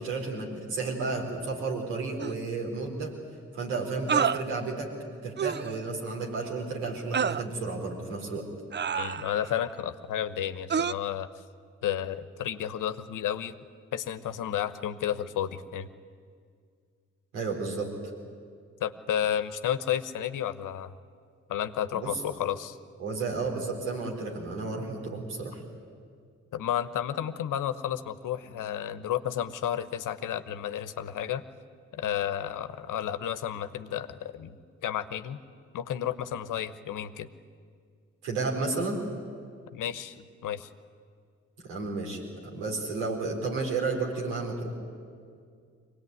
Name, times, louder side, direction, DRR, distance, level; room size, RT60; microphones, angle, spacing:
voice 1, 0.0-3.2 3.5-4.9 5.2-8.5 17.3-17.9 21.9-22.2 23.0-25.6 38.2-39.0 41.6-44.7, right 3 dB, 85° right, -1 dB, 4.1 m, -32 dB
sound 1, 2.2-2.3 4.1-4.4 5.4-5.7 7.1-7.4 8.7-9.5 10.7-10.9, right 7 dB, 35° right, 0.6 m, -28 dB
voice 2, 9.0-11.3 11.8-13.6 13.9-15.9 18.8-20.9 21.5-22.8 26.5-31.4 31.9-34.6 34.8-35.4 35.7-37.3 39.7-40.1 40.4-40.7, left 10 dB, 65° left, 12 dB, 1.1 m, -32 dB
23.5 x 18.0 x 9.5 m, 2.2 s
hypercardioid pair, 40°, 33 cm